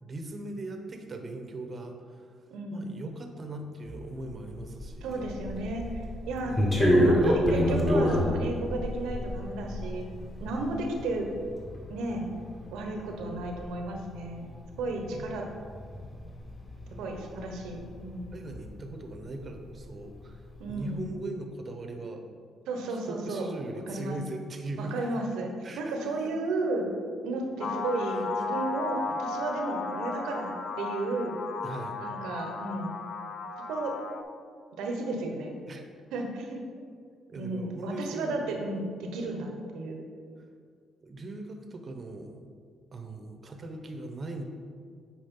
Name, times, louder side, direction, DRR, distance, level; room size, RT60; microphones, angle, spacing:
voice 1, 0.0-2.3 2.7-5.3 15.1-15.3 16.9-17.1 18.3-20.4 20.7-22.3 22.9-24.9 25.6-25.8 26.2-26.3 31.6-32.0 35.7-35.8 37.3-38.7 39.1-39.3 41.0-42.4 42.9-44.4, right 2 dB, 40° right, 5 dB, 0.9 m, -39 dB
voice 2, 2.5-2.9 5.0-10.0 10.4-11.3 11.9-12.3 12.7-14.5 14.8-15.5 17.0-18.3 20.6-21.1 22.7-23.5 23.9-24.2 24.8-25.5 25.8-26.9 27.2-31.4 32.0-32.9 33.7-33.9 34.8-35.6 36.1-36.6 37.3-40.0, right 2 dB, 90° right, 2 dB, 1.1 m, -33 dB
sound 1, 3.9-19.4 19.7-20.9, equal, 20° left, 1.7 m, -30 dB
sound 2, 27.6-34.2, left 4 dB, 45° left, 0.6 m, -35 dB
8.5 x 4.9 x 3.8 m, 2.1 s
cardioid pair, 90°, 0 cm